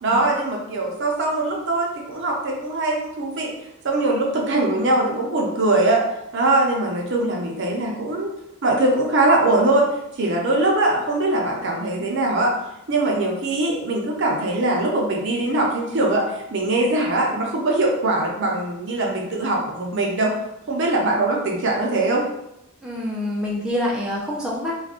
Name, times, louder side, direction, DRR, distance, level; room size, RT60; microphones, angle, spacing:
voice 1, 0.0-3.5 3.8-6.0 6.3-8.3 8.6-12.5 12.9-20.3 20.7-22.3, right 2 dB, 55° right, -1 dB, 0.6 m, -21 dB
voice 2, 22.8-24.7, left 1 dB, 5° right, -5 dB, 0.4 m, -26 dB
2.4 x 2.2 x 3.5 m, 0.84 s
head